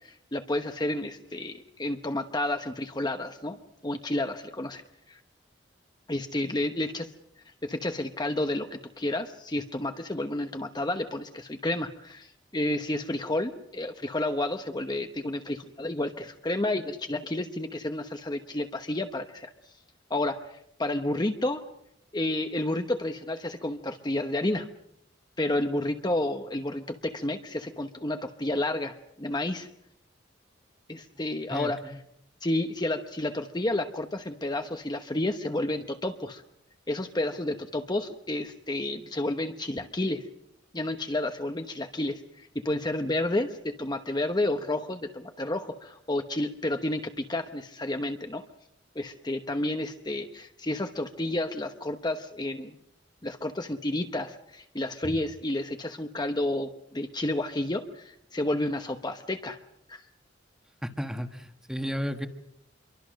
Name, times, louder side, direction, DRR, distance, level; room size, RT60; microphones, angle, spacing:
voice 1, 0.0-4.8 5.1-5.2 6.1-7.1 7.6-19.5 20.1-21.6 22.1-24.7 25.4-29.7 30.9-32.0 32.4-36.4 36.9-40.3 40.7-48.4 48.9-52.8 53.2-59.6 59.9-60.0, left 1 dB, 25° left, 7 dB, 1.0 m, -31 dB
voice 2, 31.5-31.9 55.0-55.1 60.8-62.3, equal, 5° right, 7 dB, 1.5 m, -33 dB
27.0 x 23.0 x 6.4 m, 0.78 s
head